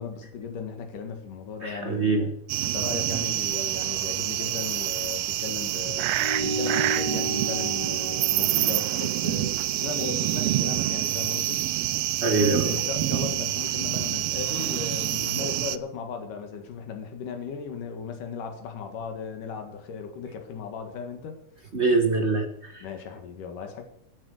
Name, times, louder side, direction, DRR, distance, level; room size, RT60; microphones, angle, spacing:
voice 1, 0.0-2.3 2.6-11.7 12.2-21.4 22.8-23.8, left 6 dB, 90° left, 5 dB, 3.5 m, -36 dB
voice 2, 1.6-2.3 12.2-12.7 21.7-22.8, right 3 dB, 55° right, 5 dB, 0.7 m, -24 dB
sound 1, 2.5-15.8, right 15 dB, 85° right, 1.4 m, -27 dB
sound 2, 6.2-11.0, right 1 dB, 30° left, 4.4 m, -34 dB
14.5 x 9.0 x 6.6 m, 0.73 s
omnidirectional pair, 3.6 m